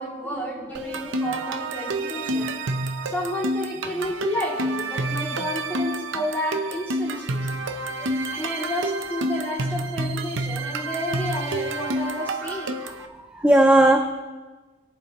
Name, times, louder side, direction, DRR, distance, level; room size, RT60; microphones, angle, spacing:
voice 1, 0.0-2.6 3.0-7.4 8.3-12.8, left 1 dB, 10° left, -5 dB, 2.6 m, -31 dB
sound 1, 0.8-13.1, right 2 dB, 80° right, 0.7 m, -29 dB
voice 2, 13.2-14.2, right 1 dB, 5° right, 4 dB, 0.5 m, -19 dB
20.0 x 7.4 x 3.0 m, 1.3 s
head